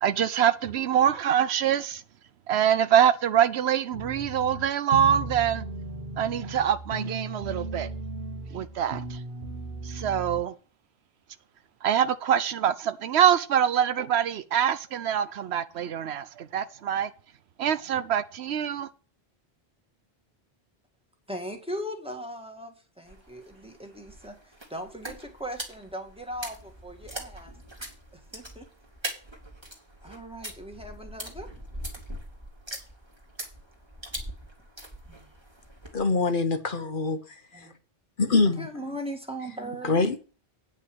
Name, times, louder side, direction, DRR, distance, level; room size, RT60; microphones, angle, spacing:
voice 1, 0.0-2.0 2.5-5.6 6.2-7.9 8.5-9.2 9.8-10.5 11.8-17.1 17.6-18.9, right 9 dB, 85° right, 1.0 m, -24 dB
sound 1, 3.9-10.4, right 2 dB, 55° right, 1.8 m, -36 dB
voice 2, 21.3-27.5 28.1-28.7 30.0-31.5 35.1-35.3 37.5-37.7 38.6-40.1, equal, 5° right, 1.9 m, -39 dB
sound 2, 23.1-36.1, right 1 dB, 25° right, 2.3 m, -42 dB
voice 3, 35.9-37.2 37.5-37.7 38.2-38.7 39.8-40.2, left 3 dB, 55° left, 1.1 m, -24 dB
9.2 x 5.4 x 7.8 m
omnidirectional pair, 1.1 m